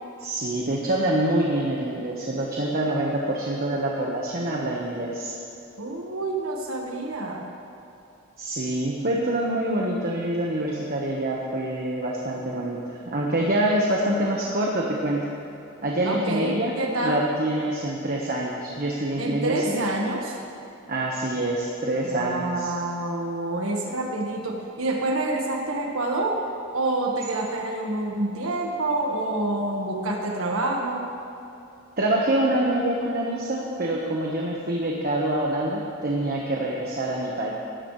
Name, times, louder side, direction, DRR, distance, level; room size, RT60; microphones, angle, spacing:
voice 1, 0.2-5.3 8.4-15.3 15.8-19.8 20.9-22.7 32.0-37.5, right 1 dB, 45° right, -3 dB, 1.3 m, -26 dB
voice 2, 5.8-7.5 16.0-17.2 19.2-20.4 22.0-26.4 26.7-31.1, right 2 dB, 75° right, 0 dB, 1.6 m, -27 dB
18.0 x 14.0 x 3.3 m, 2.8 s
head